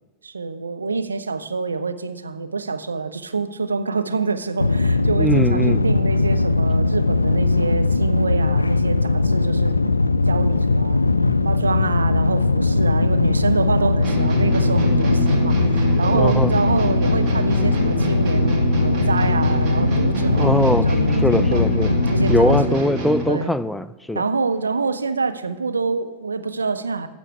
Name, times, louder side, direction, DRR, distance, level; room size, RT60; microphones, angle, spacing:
voice 1, 0.2-9.8 10.3-11.0 11.4-21.6 22.1-22.8 23.3-23.5 24.1-27.1, right 4 dB, 75° right, 0.6 m, -26 dB
sound 1, 4.6-22.7, left 3 dB, 80° left, 0.3 m, -19 dB
voice 2, 5.2-5.8 16.1-16.5 20.4-20.9 21.2-21.9 22.3-24.2, left 1 dB, 5° left, 0.4 m, -21 dB
sound 2, 14.0-23.4, right 2 dB, 40° right, 2.2 m, -27 dB
14.5 x 6.8 x 4.7 m
figure-of-eight pair, 90°, 0 cm